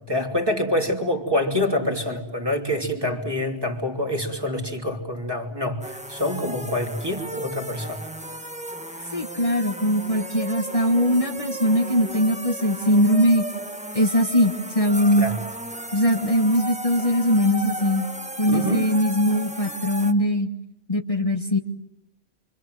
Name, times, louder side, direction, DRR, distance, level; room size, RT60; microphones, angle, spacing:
voice 1, 0.1-8.1 9.0-9.1 15.2-15.4 18.5-18.9, left 1 dB, 20° right, 2 dB, 3.0 m, -26 dB
sound 1, 5.8-20.1, right 1 dB, 5° right, 1.1 m, -35 dB
voice 2, 9.1-13.5 13.9-15.2 15.9-18.1 18.4-20.5 20.9-21.6, equal, 35° left, 2 dB, 1.7 m, -21 dB
28.5 x 25.5 x 7.7 m, 0.86 s
omnidirectional pair, 1.1 m